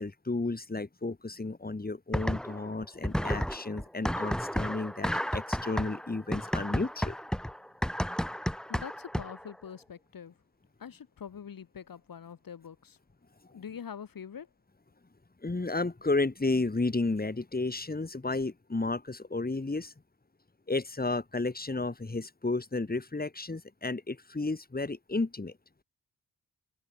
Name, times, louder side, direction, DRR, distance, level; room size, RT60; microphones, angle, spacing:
voice 1, 0.0-7.1 13.5-13.6 15.4-19.9 20.7-25.5, left 3 dB, 25° left, 3.3 m, -32 dB
sound 1, 2.1-2.7 3.0-9.5, equal, ahead, 0.9 m, -32 dB
voice 2, 8.7-10.3 10.8-13.0 13.5-14.5, left 7 dB, 85° left, 4.2 m, -44 dB
cardioid pair, 60°, 33 cm